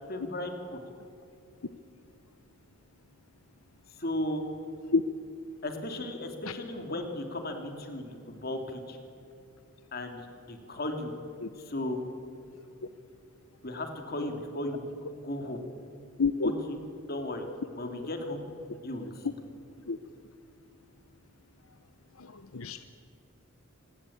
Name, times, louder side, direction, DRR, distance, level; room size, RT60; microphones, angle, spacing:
voice 1, 0.1-0.8 4.0-4.5 5.6-9.0 9.9-11.1 11.6-12.0 13.6-14.9 15.2-15.6 16.4-16.8 17.1-17.5 17.7-18.4 18.8-19.4, left 1 dB, 45° left, 5 dB, 2.9 m, -35 dB
voice 2, 16.2-16.5 19.9-20.0 22.2-22.8, left 4 dB, 80° left, 11 dB, 0.8 m, -28 dB
26.5 x 20.0 x 8.7 m, 2.6 s
head